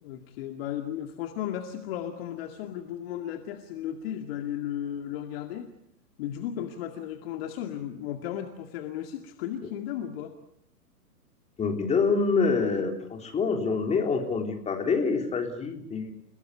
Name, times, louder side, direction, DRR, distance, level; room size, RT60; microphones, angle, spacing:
voice 1, 0.0-5.7 6.2-10.3, left 10 dB, 35° left, 6 dB, 2.2 m, -35 dB
voice 2, 11.6-16.1, left 4 dB, 15° left, 4 dB, 3.6 m, -26 dB
30.0 x 18.5 x 8.4 m, 0.72 s
figure-of-eight pair, 120°, 48 cm